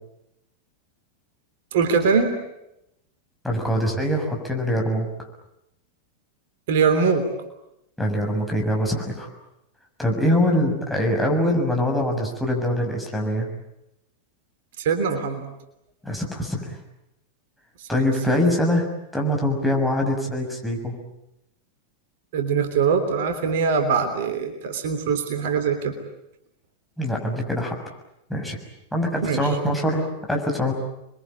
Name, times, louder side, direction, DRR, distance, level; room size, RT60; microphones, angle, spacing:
voice 1, 1.7-2.3 6.7-7.2 14.8-15.4 22.3-26.0 29.2-29.4, right 5 dB, 55° right, 7 dB, 3.3 m, -22 dB
voice 2, 3.4-5.1 8.0-9.3 10.0-13.5 16.0-16.7 17.9-18.9 19.1-21.0 27.0-27.7 28.3-28.6 28.9-30.7, equal, ahead, 0 dB, 6.6 m, -23 dB
29.0 x 22.5 x 8.8 m, 0.85 s
figure-of-eight pair, 90°, 0 cm